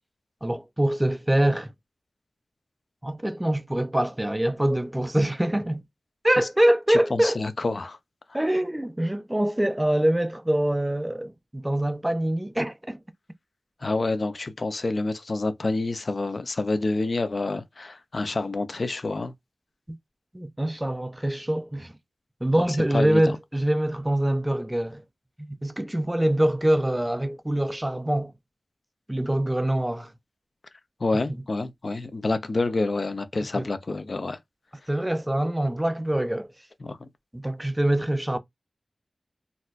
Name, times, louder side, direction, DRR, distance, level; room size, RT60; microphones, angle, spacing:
voice 1, 0.4-1.7 3.0-5.8 6.2-7.4 8.3-13.0 19.9-20.0 20.3-21.9 22.4-25.0 25.4-28.3 29.1-30.1 33.5-33.7 34.9-36.5 37.3-38.4, right 1 dB, 15° right, 0.4 m, -24 dB
voice 2, 6.9-8.0 13.8-19.3 22.7-23.3 31.0-34.4 36.8-37.0, left 2 dB, 55° left, 0.5 m, -28 dB
4.0 x 2.2 x 2.4 m
wide cardioid pair, 80°, 0 cm